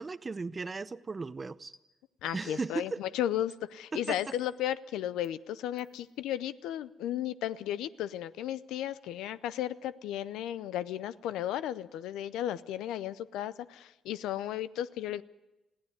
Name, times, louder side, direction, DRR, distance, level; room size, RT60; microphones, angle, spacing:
voice 1, 0.0-1.7 2.3-3.0 3.9-4.4, right 4 dB, 30° right, 16 dB, 0.7 m, -36 dB
sound 1, 1.7-1.8 2.3-2.9 3.5-3.6 4.0-4.6 5.2-5.3 5.8-6.0, left 1 dB, 5° left, 1.7 m, -54 dB
voice 2, 2.2-15.2, left 12 dB, 90° left, 16 dB, 0.6 m, -34 dB
21.0 x 15.5 x 9.5 m, 1.0 s
cardioid pair, 90°, 0 cm